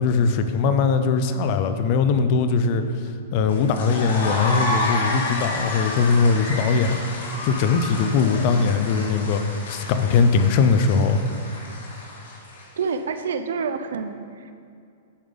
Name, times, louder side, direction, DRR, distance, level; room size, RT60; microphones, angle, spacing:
voice 1, 0.0-2.8 3.3-7.0 7.4-9.4 9.7-11.2, left 5 dB, 35° left, 9 dB, 0.4 m, -20 dB
sound 1, 3.5-12.8, left 2 dB, 85° left, 1.8 m, -30 dB
voice 2, 12.8-14.5, right 5 dB, 80° right, 10 dB, 0.4 m, -28 dB
9.4 x 5.1 x 3.6 m, 2.4 s
supercardioid pair, 165°, 0 cm